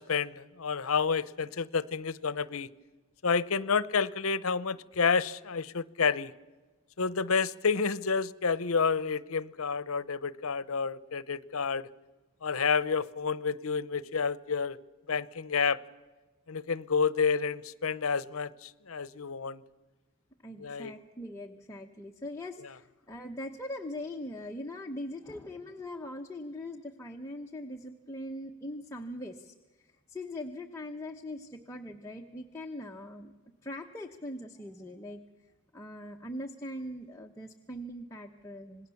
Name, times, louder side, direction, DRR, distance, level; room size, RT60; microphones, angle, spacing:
voice 1, 0.0-2.7 3.2-6.3 7.0-11.9 12.4-14.8 15.1-15.8 16.5-19.6 20.6-20.9, left 5 dB, 75° left, 0.7 m, -29 dB
voice 2, 20.4-33.3 33.6-38.9, left 1 dB, 15° left, 1.0 m, -41 dB
27.0 x 20.0 x 7.0 m
head